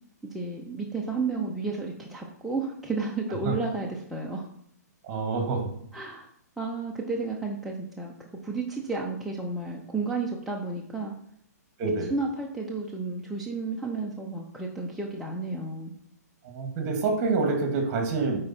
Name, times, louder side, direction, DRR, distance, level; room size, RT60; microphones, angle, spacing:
voice 1, 0.3-4.4 5.9-6.3 6.6-11.1 12.1-15.9, right 3 dB, ahead, -3 dB, 0.7 m, -32 dB
voice 2, 5.0-5.6 11.8-12.1 16.4-18.4, right 4 dB, 30° right, 3 dB, 1.9 m, -27 dB
9.3 x 4.4 x 4.3 m, 0.68 s
hypercardioid pair, 145°, 9 cm